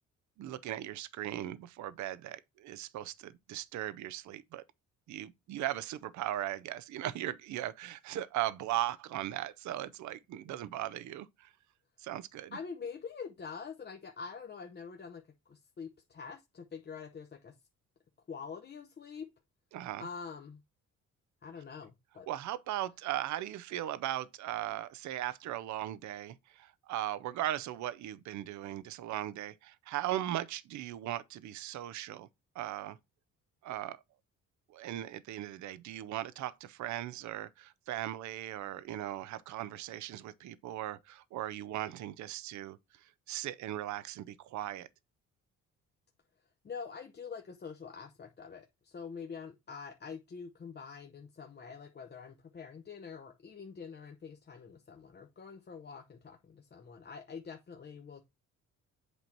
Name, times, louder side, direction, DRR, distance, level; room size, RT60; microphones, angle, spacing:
voice 1, 0.4-4.6 5.1-11.5 12.0-12.6 19.7-20.1 22.3-32.3 32.6-33.0 33.6-34.0 34.7-42.8 43.3-44.9, right 13 dB, 70° right, 0.6 m, -38 dB
voice 2, 12.5-17.5 18.3-19.3 20.0-20.6 21.4-22.3 46.6-58.3, left 5 dB, 35° left, 0.8 m, -45 dB
8.1 x 2.8 x 4.5 m
cardioid pair, 90°, 30 cm